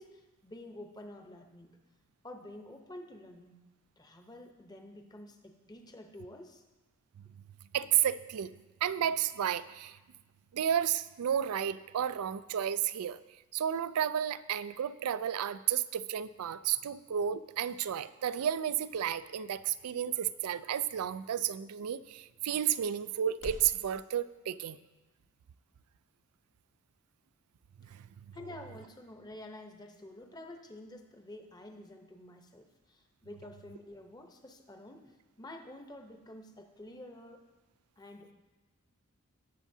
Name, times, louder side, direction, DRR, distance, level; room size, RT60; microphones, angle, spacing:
voice 1, 0.0-1.8 2.2-3.6 4.0-6.6 16.8-16.9 28.3-37.4 38.0-38.3, left 1 dB, 20° left, 4 dB, 0.8 m, -49 dB
voice 2, 7.7-8.5 8.8-10.0 10.5-13.2 13.5-24.8 27.9-28.0, right 9 dB, 85° right, 15 dB, 0.4 m, -32 dB
sound 1, 17.5-23.8, equal, 70° left, 1.4 m, -54 dB
18.0 x 7.2 x 2.7 m, 1.1 s
head